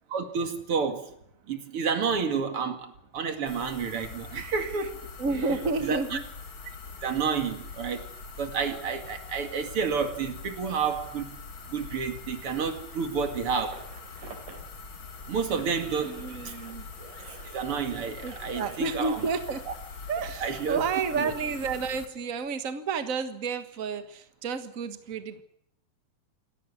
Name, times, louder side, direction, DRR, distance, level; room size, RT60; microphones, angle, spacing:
voice 1, 0.1-1.1 1.5-5.0 5.8-6.2 7.0-8.1 8.4-11.4 11.7-13.8 15.3-16.5 17.4-19.2 20.4-20.8 21.2-21.3, right 6 dB, 45° right, 2.7 m, -30 dB
sound 1, 3.5-22.1, left 4 dB, 40° left, 2.7 m, -43 dB
voice 2, 5.2-6.2 16.0-16.8 18.2-19.7 20.1-25.4, right 4 dB, 80° right, 0.7 m, -31 dB
sound 2, 12.9-14.7 15.1-19.3, right 4 dB, 60° right, 4.8 m, -48 dB
28.5 x 13.0 x 9.7 m
omnidirectional pair, 4.1 m